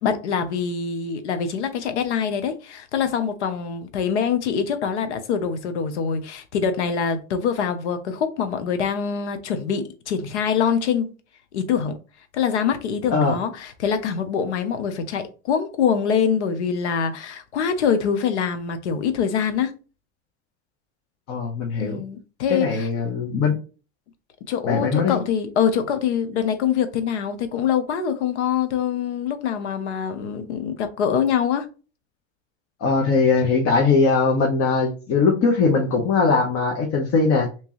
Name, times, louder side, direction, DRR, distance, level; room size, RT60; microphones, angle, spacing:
voice 1, 0.0-11.1 11.5-12.0 12.3-19.7 21.8-22.9 24.5-31.7, left 7 dB, 85° left, 0.8 m, -24 dB
voice 2, 21.3-22.0 22.5-23.5 24.6-25.2 32.8-37.5, left 4 dB, 45° left, 1.1 m, -20 dB
3.4 x 3.0 x 3.0 m
hypercardioid pair, 100°, 34 cm